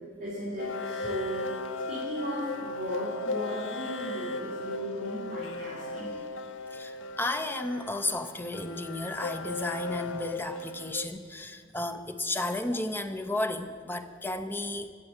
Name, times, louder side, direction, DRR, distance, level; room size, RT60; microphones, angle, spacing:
voice 1, 0.2-1.5 1.9-6.1, equal, 40° right, -9 dB, 4.2 m, -36 dB
sound 1, 0.6-11.1, left 3 dB, 65° left, 0.6 m, -37 dB
voice 2, 6.7-14.9, left 2 dB, 10° left, 8 dB, 0.6 m, -33 dB
14.5 x 7.5 x 8.1 m, 2.1 s
head